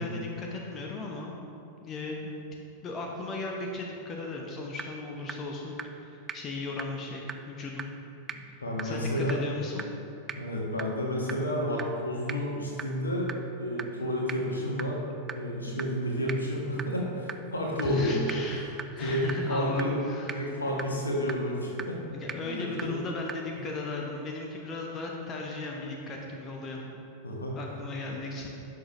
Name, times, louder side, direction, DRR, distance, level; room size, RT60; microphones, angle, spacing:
voice 1, 0.0-1.3 1.8-2.3 2.8-7.8 8.4-9.9 17.8-20.5 22.1-26.9 27.5-28.5, left 3 dB, 30° left, 0 dB, 0.9 m, -36 dB
sound 1, 4.3-4.4 4.8-4.9 5.3-5.4 5.8-5.9 6.3-6.4 6.8-6.9 7.3-7.4 7.8-7.9 8.3-8.4 8.8-8.9 9.3-9.4 9.8-9.9 10.3-10.4 10.8-10.9 11.3-11.4 11.8-11.9 12.3-12.4 12.8-12.9 13.3-13.4 13.8-13.9 14.3-14.4 14.8-14.9 15.3-15.4 15.8-15.9 16.3-16.4 16.8-16.9 17.3-17.4 17.8-17.9 18.3-18.4 18.8-18.9 19.3-19.4 19.8-19.9 20.3-20.4 20.8-20.9 21.3-21.4 21.8-21.9 22.3-22.4 22.8-22.9 23.3-23.4, right 6 dB, 20° right, 0.3 m, -35 dB
voice 2, 8.6-9.4 10.4-13.3 13.6-15.0 15.3-18.4 19.0-20.0 20.3-22.0 22.4-22.9 27.2-27.6, equal, 75° left, -2 dB, 1.5 m, -30 dB
11.0 x 6.3 x 3.1 m, 2.7 s
figure-of-eight pair, 90°, 0 cm